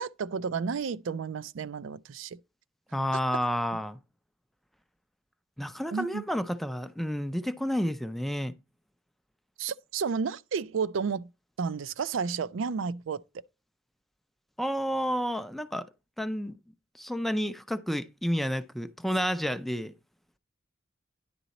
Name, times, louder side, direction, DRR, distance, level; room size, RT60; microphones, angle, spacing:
voice 1, 0.0-2.4 5.9-6.2 9.6-11.3 11.6-13.2, right 5 dB, 75° right, 0.4 m, -32 dB
voice 2, 2.9-4.0 5.6-8.6 14.6-15.9 16.2-16.6 16.9-19.9, equal, ahead, 0.4 m, -30 dB
10.0 x 3.9 x 4.1 m
head